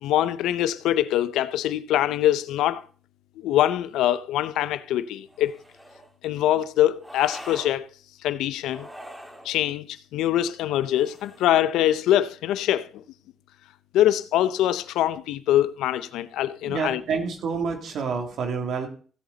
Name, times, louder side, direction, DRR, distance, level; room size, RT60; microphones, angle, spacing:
voice 1, 0.0-2.9 3.4-5.5 6.2-7.9 8.2-8.9 9.4-13.0 13.9-17.0, left 12 dB, 90° left, 0.6 m, -23 dB
sound 1, 5.3-6.1 7.0-7.7 8.6-9.5 10.8-11.7, right 1 dB, 5° right, 2.3 m, -43 dB
voice 2, 16.6-18.9, right 5 dB, 70° right, 2.7 m, -28 dB
16.5 x 8.1 x 4.0 m
cardioid pair, 90°, 0 cm